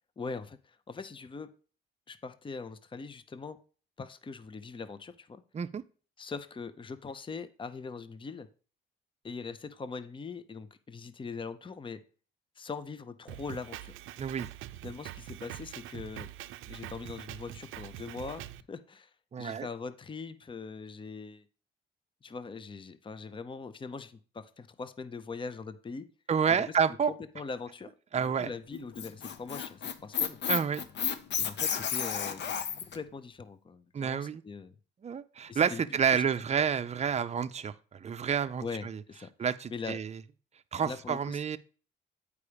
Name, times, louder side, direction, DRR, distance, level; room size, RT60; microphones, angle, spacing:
voice 1, 0.2-1.5 2.1-3.6 4.0-5.4 6.2-8.5 9.2-12.0 12.6-13.9 14.8-16.3 16.7-18.4 18.7-19.1 19.4-21.4 22.2-26.1 26.5-26.7 27.0-27.9 28.2-30.4 31.4-34.7 35.5-35.9 36.1-36.3 38.6-39.3 39.7-40.0 40.8-41.6, left 4 dB, 25° left, 13 dB, 0.6 m, -41 dB
Drum kit, 13.3-18.6, right 14 dB, 90° right, 0.5 m, -44 dB
voice 2, 14.2-14.5 19.3-19.7 26.3-27.1 28.1-28.5 30.5-30.9 33.9-34.4 35.0-39.0 39.4-40.2 40.7-41.6, right 7 dB, 35° right, 11 dB, 0.5 m, -29 dB
Squeak, 28.7-33.0, left 7 dB, 60° left, 0.8 m, -32 dB
8.4 x 4.9 x 5.0 m, 0.38 s
cardioid pair, 90°, 20 cm